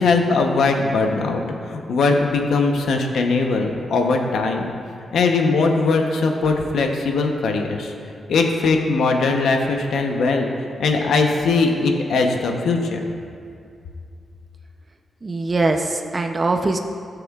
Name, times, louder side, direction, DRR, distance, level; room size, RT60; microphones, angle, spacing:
voice 1, 0.0-1.4 1.7-4.7 5.1-7.9 8.3-10.5 10.8-13.0, left 3 dB, 85° left, 3 dB, 0.8 m, -20 dB
voice 2, 15.2-16.8, right 2 dB, 35° right, 4 dB, 0.6 m, -22 dB
14.5 x 6.8 x 2.4 m, 2.4 s
cardioid pair, 70°, 0 cm